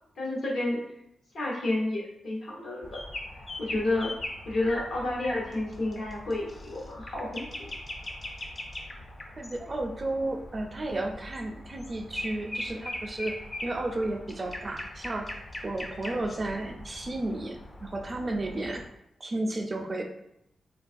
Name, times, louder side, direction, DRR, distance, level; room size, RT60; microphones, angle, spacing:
voice 1, 0.2-0.8 1.3-3.0 3.6-4.1 4.5-7.7, left 2 dB, 75° left, -3 dB, 0.9 m, -30 dB
sound 1, 2.8-18.9, left 1 dB, 30° left, 0.4 m, -41 dB
voice 2, 9.4-13.4 13.6-15.3 15.6-18.9 19.2-20.0, right 2 dB, 35° right, 4 dB, 0.4 m, -33 dB
3.5 x 2.3 x 2.5 m, 0.80 s
cardioid pair, 95°, 0 cm